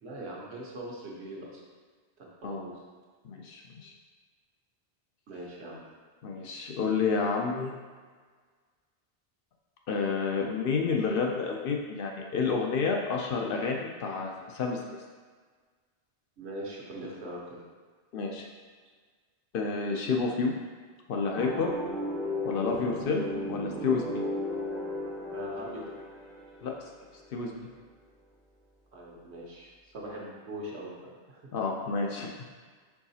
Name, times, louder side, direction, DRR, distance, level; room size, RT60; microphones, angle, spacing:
voice 1, 0.0-1.6 2.2-2.7 5.3-5.8 16.4-17.6 25.3-25.9 28.9-30.9 31.3-31.4, right 1 dB, 80° right, -3 dB, 1.2 m, -41 dB
voice 2, 3.2-3.9 6.2-7.8 9.9-15.0 18.1-18.4 19.5-20.5 21.1-21.7 22.5-24.2 26.6-26.7 27.3-27.7 31.5-32.4, left 4 dB, 65° left, 0 dB, 0.7 m, -30 dB
sound 1, 21.4-27.2, left 1 dB, ahead, 0.5 m, -35 dB
4.7 x 3.9 x 2.7 m, 1.5 s
omnidirectional pair, 1.1 m